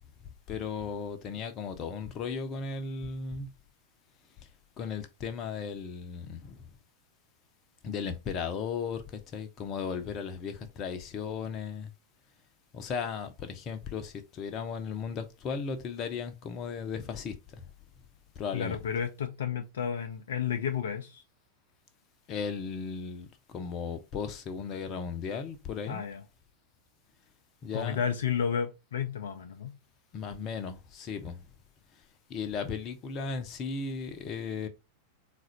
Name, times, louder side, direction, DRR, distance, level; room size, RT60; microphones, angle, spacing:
voice 1, 0.2-3.5 4.4-4.5 4.8-6.6 7.8-11.9 12.7-17.7 18.4-18.8 22.3-26.0 27.6-28.0 30.1-31.5 31.9-32.0 32.3-34.7, left 5 dB, 35° left, 0.8 m, -36 dB
voice 2, 18.5-21.2 25.9-26.2 27.7-29.7, left 7 dB, 60° left, 0.5 m, -32 dB
4.1 x 2.5 x 4.2 m
figure-of-eight pair, 90°, 0 cm